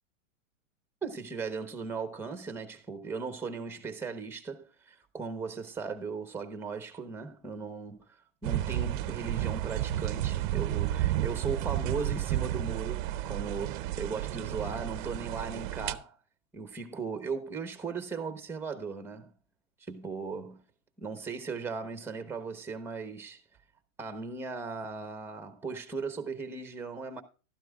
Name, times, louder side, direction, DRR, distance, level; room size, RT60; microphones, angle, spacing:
voice 1, 1.0-16.2 16.5-19.3 19.8-20.6 21.0-23.4 24.0-27.2, right 4 dB, 5° right, 0.9 m, -37 dB
sound 1, 8.4-16.0, right 14 dB, 40° right, 0.6 m, -32 dB
13.5 x 12.5 x 2.4 m
supercardioid pair, 150°, 40 cm